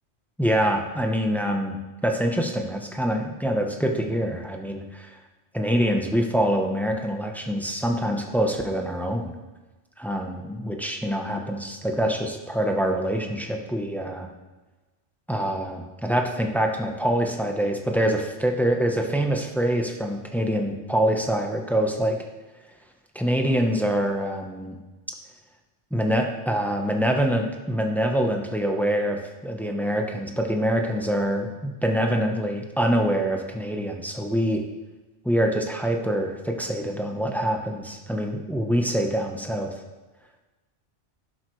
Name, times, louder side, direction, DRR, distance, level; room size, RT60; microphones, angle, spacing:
voice 1, 0.4-5.2 5.5-9.3 10.0-14.3 15.3-22.2 23.1-24.7 25.9-34.6 35.2-39.7, equal, ahead, 2 dB, 0.8 m, -25 dB
11.5 x 8.0 x 3.2 m, 1.2 s
omnidirectional pair, 1.2 m